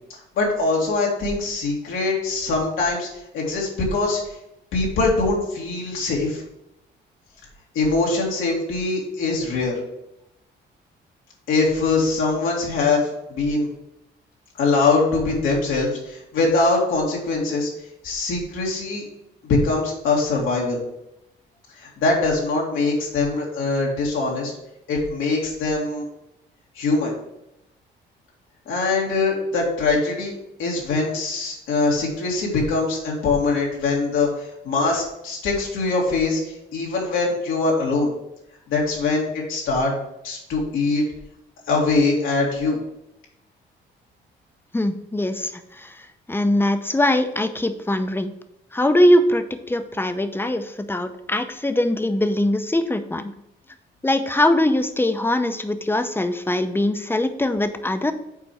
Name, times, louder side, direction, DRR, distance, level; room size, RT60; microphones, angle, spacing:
voice 1, 0.4-3.1 3.3-4.2 4.7-6.4 7.7-9.8 11.5-13.7 14.6-17.7 18.0-19.0 19.4-20.8 21.8-24.5 24.9-26.1 26.7-27.1 28.7-30.3 30.6-38.1 38.7-39.9 40.2-41.0 41.7-42.8, left 3 dB, 90° left, -3 dB, 2.2 m, -22 dB
voice 2, 44.7-46.0 46.3-48.3 48.7-53.3 54.0-58.1, left 1 dB, 10° left, 9 dB, 0.6 m, -21 dB
7.1 x 4.3 x 4.9 m, 0.86 s
cardioid pair, 90°, 20 cm